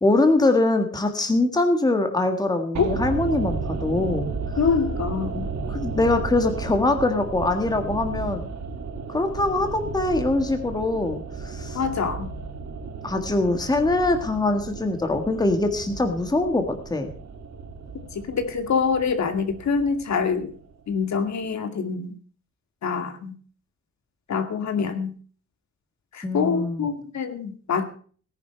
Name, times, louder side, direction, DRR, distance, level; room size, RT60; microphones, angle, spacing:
voice 1, 0.0-4.3 5.7-8.4 9.1-11.8 13.0-17.1 26.2-26.9, left 2 dB, 15° left, 6 dB, 1.7 m, -23 dB
sound 1, 2.7-20.9 21.2-21.3, right 4 dB, 65° right, 2.7 m, -33 dB
voice 2, 4.6-5.5 11.7-12.3 18.1-20.5 20.9-22.2 22.8-23.3 24.3-25.1 26.1-27.8, left 5 dB, 65° left, 7 dB, 2.4 m, -25 dB
18.0 x 11.0 x 4.5 m, 0.43 s
wide cardioid pair, 180°, 30 cm